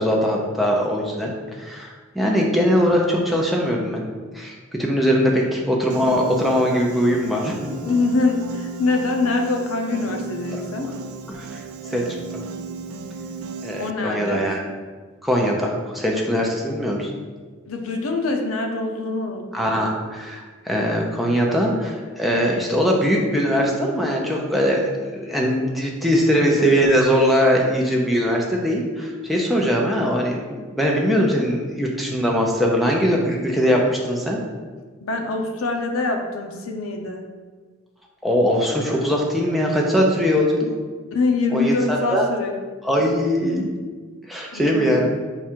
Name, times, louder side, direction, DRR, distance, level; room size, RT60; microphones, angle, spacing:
voice 1, 0.0-1.3 1.6-4.0 4.3-7.8 10.5-10.6 11.3-11.5 11.9-12.1 13.6-14.6 15.2-17.1 19.5-34.4 38.2-40.7 41.5-42.3 42.8-43.7 44.3-45.1, equal, ahead, -2 dB, 0.5 m, -21 dB
Piano, 5.9-13.9, right 4 dB, 85° right, 0.3 m, -34 dB
voice 2, 7.8-10.9 13.8-14.5 17.7-19.7 35.0-37.3 41.1-42.5 44.5-45.1, left 3 dB, 80° left, 3 dB, 0.6 m, -24 dB
4.7 x 2.4 x 4.4 m, 1.4 s
head